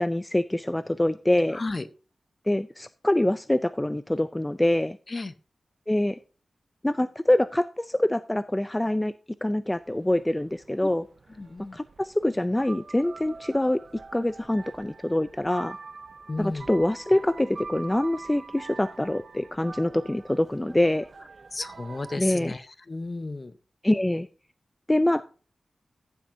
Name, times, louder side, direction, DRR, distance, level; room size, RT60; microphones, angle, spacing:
voice 1, 0.0-1.6 2.5-5.0 5.9-6.2 6.8-9.1 9.4-11.0 11.7-15.8 16.4-21.1 22.2-22.5 23.8-24.3 24.9-25.2, left 1 dB, 15° left, 13 dB, 0.3 m, -25 dB
voice 2, 1.5-1.9 5.1-5.3 10.8-10.9 11.3-11.8 16.3-16.7 21.5-23.6, left 2 dB, 40° left, 13 dB, 0.7 m, -33 dB
sound 1, 9.8-22.2, right 4 dB, 65° right, 0.4 m, -45 dB
13.5 x 7.4 x 2.6 m, 0.37 s
wide cardioid pair, 70°, 0 cm